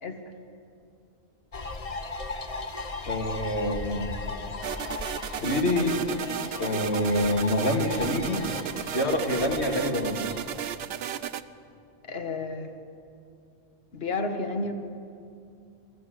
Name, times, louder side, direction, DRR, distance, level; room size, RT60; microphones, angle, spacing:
sound 1, 1.5-10.8, left 3 dB, 35° left, 1.0 m, -37 dB
voice 1, 3.1-4.1 5.4-6.0 6.6-8.4 8.9-10.3, left 1 dB, 80° left, 2 dB, 2.2 m, -26 dB
sound 2, 4.6-11.4, right 9 dB, 70° right, 0.9 m, -34 dB
voice 2, 12.0-12.7 13.9-14.7, left 3 dB, 65° left, 6 dB, 1.5 m, -31 dB
23.0 x 14.5 x 7.7 m, 2.5 s
omnidirectional pair, 1.1 m